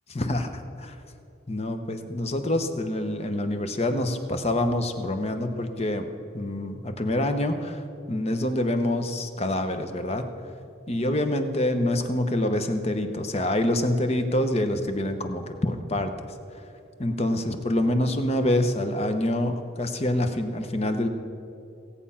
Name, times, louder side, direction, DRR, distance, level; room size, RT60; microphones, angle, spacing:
voice 1, 0.1-0.9 1.5-6.1 6.3-7.8 8.1-10.3 10.9-16.1 17.0-21.1, left 1 dB, 35° left, 7 dB, 0.9 m, -26 dB
17.0 x 8.6 x 5.6 m, 2.5 s
head